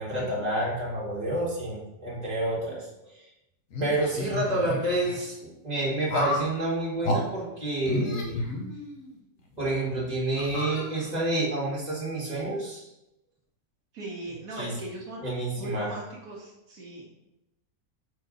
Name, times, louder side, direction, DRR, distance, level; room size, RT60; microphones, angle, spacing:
voice 1, 0.0-3.1 3.8-8.4 9.6-12.9 14.6-14.7 15.2-15.9, right 1 dB, 30° right, -5 dB, 2.0 m, -29 dB
sound 1, 3.7-5.2 6.1-6.5 7.0-7.2 7.8-9.1 9.6-9.7 10.4-11.3, left 1 dB, 65° left, 1.3 m, -31 dB
voice 2, 13.9-15.2 15.6-17.3, right 2 dB, 75° right, -2 dB, 1.6 m, -39 dB
4.7 x 4.6 x 5.1 m, 0.88 s
omnidirectional pair, 1.5 m